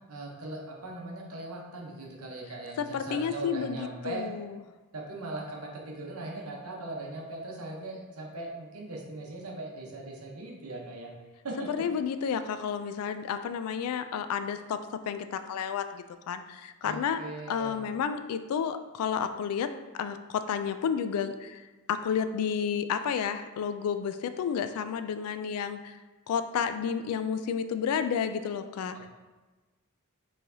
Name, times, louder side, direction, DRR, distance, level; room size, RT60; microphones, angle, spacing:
voice 1, 0.1-4.3 4.9-11.1 11.4-11.8 16.8-17.8, right 2 dB, 75° right, -1 dB, 0.9 m, -39 dB
voice 2, 2.8-4.6 11.7-17.2 17.5-19.7 19.9-21.6 21.9-26.0 26.3-29.1, left 7 dB, 75° left, 14 dB, 0.3 m, -31 dB
4.5 x 3.2 x 2.7 m, 1.2 s
head